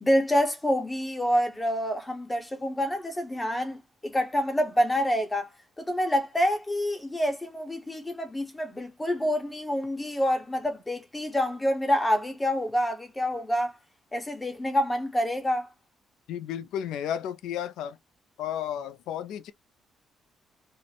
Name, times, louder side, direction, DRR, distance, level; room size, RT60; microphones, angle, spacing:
voice 1, 0.0-5.5 5.8-13.7 14.1-15.7, equal, 15° left, 0.6 m, -27 dB
voice 2, 16.3-18.0 18.4-19.5, left 10 dB, 85° left, 0.3 m, -33 dB
2.4 x 2.0 x 3.1 m
cardioid pair, 90°, 0 cm